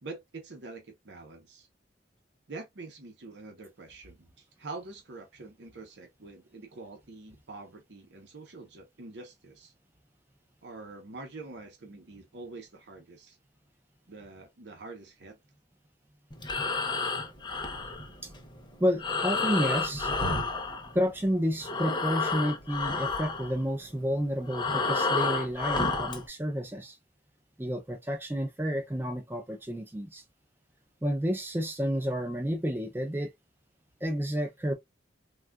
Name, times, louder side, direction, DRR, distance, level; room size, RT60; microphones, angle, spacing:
voice 1, 0.0-1.7 2.5-9.7 10.6-13.4 14.1-15.4, right 3 dB, 75° right, 0.8 m, -45 dB
Breathing, 16.3-21.3 21.6-26.3, left 3 dB, 25° left, 0.8 m, -31 dB
voice 2, 18.8-20.1 20.9-27.0 27.6-30.2 31.0-33.3 34.0-34.7, equal, 10° right, 0.5 m, -30 dB
3.5 x 2.4 x 2.2 m
head